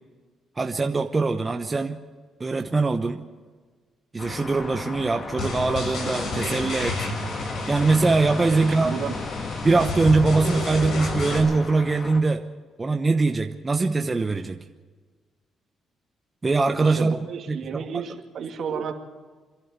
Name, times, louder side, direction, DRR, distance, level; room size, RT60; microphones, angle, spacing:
voice 1, 0.6-2.0 2.4-3.3 4.1-7.1 7.7-9.0 9.6-12.4 12.8-14.6 16.4-17.9, right 3 dB, 25° right, 6 dB, 1.0 m, -22 dB
sound 1, 4.2-12.2, left 4 dB, 45° left, 2.1 m, -36 dB
sound 2, 5.4-11.4, left 2 dB, 65° left, 6.1 m, -31 dB
voice 2, 8.5-9.2 16.8-19.0, right 7 dB, 60° right, 4 dB, 2.5 m, -32 dB
28.0 x 11.5 x 8.1 m, 1.5 s
cardioid pair, 90°, 0 cm